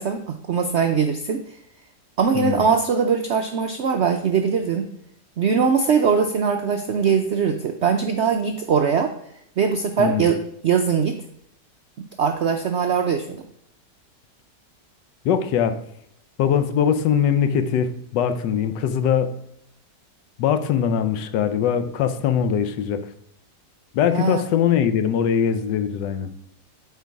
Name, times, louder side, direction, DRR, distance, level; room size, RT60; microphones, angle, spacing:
voice 1, 0.0-1.4 2.2-4.9 5.4-9.1 9.6-11.2 12.2-13.4 24.1-24.4, right 6 dB, 85° right, 6 dB, 0.6 m, -21 dB
voice 2, 2.3-2.7 10.0-10.3 15.2-15.8 16.4-19.3 20.4-23.1 23.9-26.3, left 8 dB, 80° left, 11 dB, 1.3 m, -21 dB
8.2 x 4.6 x 4.6 m, 0.73 s
omnidirectional pair, 1.9 m